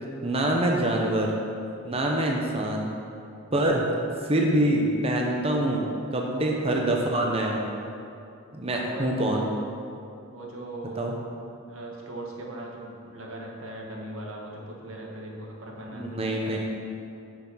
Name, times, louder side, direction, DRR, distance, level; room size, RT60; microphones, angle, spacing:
voice 1, 0.2-1.3 1.8-2.9 3.5-3.9 4.2-5.8 6.1-7.7 8.5-9.5 11.0-11.1 15.9-16.8, right 1 dB, 30° right, 0 dB, 0.8 m, -25 dB
voice 2, 8.6-9.4 10.3-11.3 11.7-16.6, right 1 dB, 90° right, -1 dB, 1.5 m, -39 dB
8.9 x 6.0 x 5.5 m, 2.6 s
head